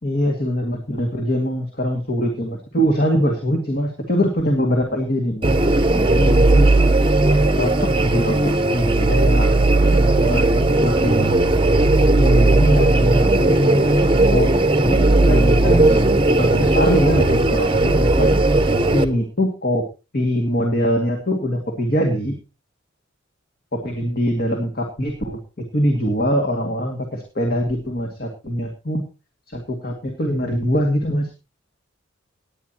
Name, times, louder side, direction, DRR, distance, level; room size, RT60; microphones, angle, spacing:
voice 1, 0.0-5.6 5.9-6.7 7.6-9.6 9.9-11.3 12.1-14.1 14.3-14.5 14.9-16.0 16.3-18.4 18.9-19.8 20.1-22.3 23.7-25.4 25.7-29.0 29.5-31.3, equal, 50° left, 2 dB, 2.2 m, -22 dB
sound 1, 5.4-19.0, right 2 dB, 25° right, 0.9 m, -16 dB
19.5 x 9.7 x 2.9 m, 0.30 s
head